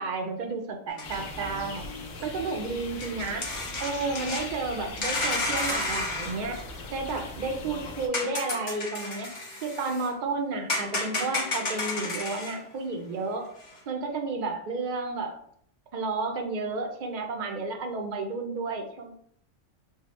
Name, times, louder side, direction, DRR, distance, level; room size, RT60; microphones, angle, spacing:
voice 1, 0.0-1.8 2.2-3.5 3.8-6.6 6.9-9.3 9.6-13.5 13.9-15.4 15.9-19.1, right 3 dB, 60° right, 4 dB, 0.5 m, -32 dB
sound 1, 0.9-1.2 2.4-2.5 3.0-4.6 5.0-7.2 8.1-10.1 10.7-12.6 13.6-13.7, left 2 dB, 40° left, 0.8 m, -32 dB
sound 2, 1.0-8.1, left 2 dB, 85° left, 1.1 m, -40 dB
4.7 x 2.1 x 2.9 m, 0.65 s
omnidirectional pair, 1.4 m